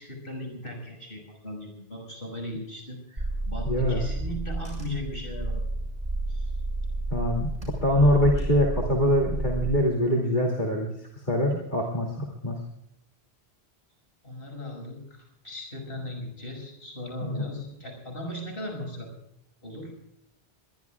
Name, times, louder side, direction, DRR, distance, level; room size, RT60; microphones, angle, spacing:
voice 1, 0.0-5.6 6.3-6.5 14.2-19.1 19.6-19.9, left 1 dB, 60° left, 3 dB, 6.4 m, -38 dB
Car / Engine, 3.2-9.8, right 2 dB, 30° right, 6.4 m, -31 dB
voice 2, 3.7-4.1 7.1-7.5 7.8-10.9 11.3-12.6 17.3-17.5, left 1 dB, 45° left, -2 dB, 2.8 m, -24 dB
23.0 x 22.0 x 2.4 m, 0.80 s
omnidirectional pair, 1.1 m